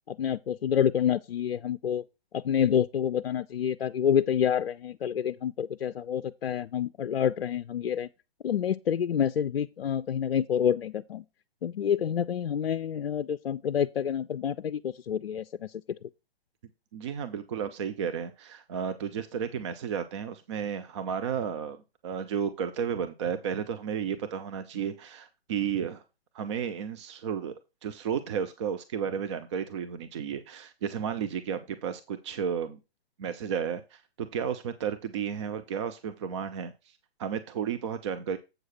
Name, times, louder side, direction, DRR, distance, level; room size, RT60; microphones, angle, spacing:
voice 1, 0.1-2.0 2.3-8.1 8.4-11.2 11.6-15.4 16.0-16.1, left 9 dB, 65° left, 0.5 m, -28 dB
voice 2, 16.9-26.0 26.3-27.5 27.8-32.8 33.2-36.9 37.2-38.4, right 7 dB, 30° right, 0.6 m, -33 dB
7.9 x 6.3 x 4.3 m
figure-of-eight pair, 130°, 31 cm